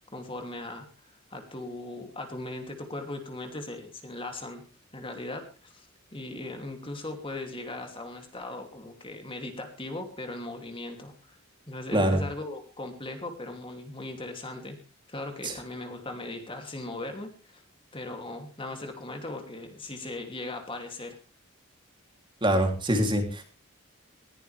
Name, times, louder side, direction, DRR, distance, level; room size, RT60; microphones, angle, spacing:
voice 1, 0.1-0.9 1.3-4.6 4.9-5.9 6.1-11.4 11.7-14.8 15.1-17.6 17.9-21.2, left 2 dB, 25° left, 5 dB, 2.8 m, -38 dB
voice 2, 22.4-23.4, right 1 dB, 20° right, 4 dB, 3.1 m, -24 dB
19.5 x 16.0 x 3.4 m, 0.33 s
head